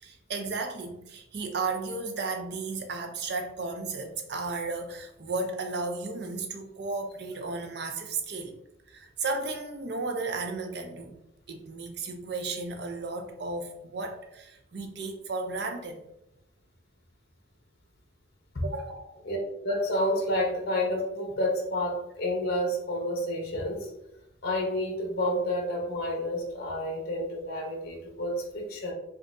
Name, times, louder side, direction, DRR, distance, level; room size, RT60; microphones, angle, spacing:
voice 1, 0.0-8.6 8.9-11.2 11.5-16.0 18.6-19.2, right 3 dB, 55° right, 4 dB, 0.6 m, -34 dB
voice 2, 19.3-23.9 24.4-28.9, left 1 dB, 50° left, 1 dB, 0.8 m, -29 dB
5.1 x 2.4 x 2.6 m, 0.88 s
head